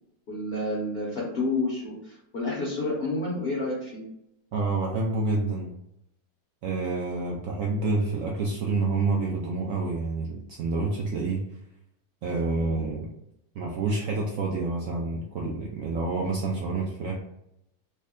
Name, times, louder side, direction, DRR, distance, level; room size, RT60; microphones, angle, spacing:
voice 1, 0.3-4.1, left 2 dB, 55° left, -4 dB, 0.7 m, -29 dB
voice 2, 4.5-5.7 6.6-11.4 12.2-13.1 13.6-17.1, right 3 dB, 85° right, -2 dB, 0.7 m, -28 dB
3.3 x 2.1 x 3.6 m, 0.80 s
omnidirectional pair, 2.0 m